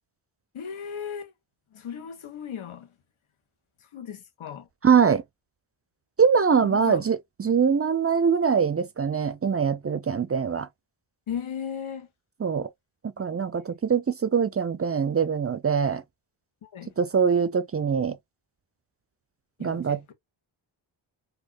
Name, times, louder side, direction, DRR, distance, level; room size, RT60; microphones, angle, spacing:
voice 1, 0.5-1.3 1.7-2.9 3.9-4.7 6.6-7.0 11.3-12.1 16.6-16.9 19.6-20.1, left 8 dB, 90° left, 1.2 m, -36 dB
voice 2, 4.8-5.2 6.2-10.7 12.4-12.7 13.2-16.0 17.0-18.2 19.6-20.1, right 6 dB, 35° right, 0.4 m, -23 dB
4.2 x 2.7 x 2.8 m
wide cardioid pair, 130°, 47 cm